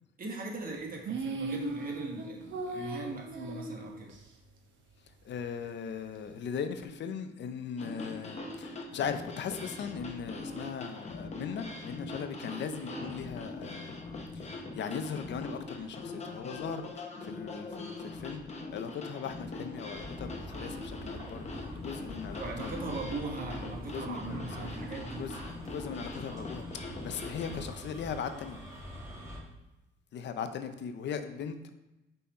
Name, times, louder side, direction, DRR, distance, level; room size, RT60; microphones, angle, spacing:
voice 1, 0.2-4.1 22.4-25.3 26.3-26.4, right 3 dB, 45° right, 1 dB, 1.4 m, -39 dB
sound 1, 1.0-4.2, right 2 dB, 70° right, 1.0 m, -37 dB
voice 2, 5.2-14.0 14.3-18.4 18.7-22.7 23.9-24.7 25.2-25.4 25.7-26.6 27.0-28.6 30.1-31.7, left 7 dB, 65° left, 9 dB, 0.6 m, -39 dB
sound 2, 7.8-27.6, left 2 dB, 35° left, 1.0 m, -42 dB
sound 3, 19.9-29.4, equal, 15° right, 2.2 m, -45 dB
5.7 x 4.1 x 4.2 m, 0.99 s
cardioid pair, 90°, 20 cm